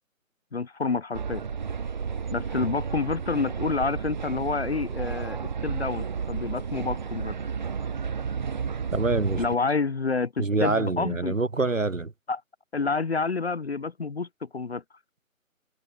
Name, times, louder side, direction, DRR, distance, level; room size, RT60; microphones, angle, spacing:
voice 1, 0.5-1.4 2.3-7.4 9.4-11.4 12.3-12.4 12.7-14.8, left 4 dB, 50° left, 0.7 m, -28 dB
sound 1, 1.1-9.6, right 6 dB, 35° right, 3.1 m, -32 dB
voice 2, 8.9-9.4 10.4-12.1, right 3 dB, 65° right, 4.4 m, -25 dB
figure-of-eight pair, 160°, 41 cm